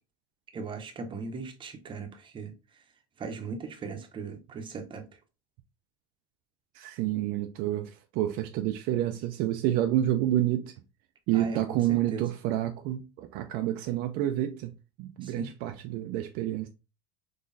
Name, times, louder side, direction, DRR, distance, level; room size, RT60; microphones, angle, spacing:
voice 1, 0.5-2.5 3.2-5.0 11.3-12.2 15.2-15.5, right 4 dB, 30° right, 0.8 m, -38 dB
voice 2, 6.7-10.7 11.3-14.7 15.0-16.7, right 13 dB, 60° right, 0.4 m, -29 dB
3.8 x 3.1 x 2.6 m
supercardioid pair, 100°, 17 cm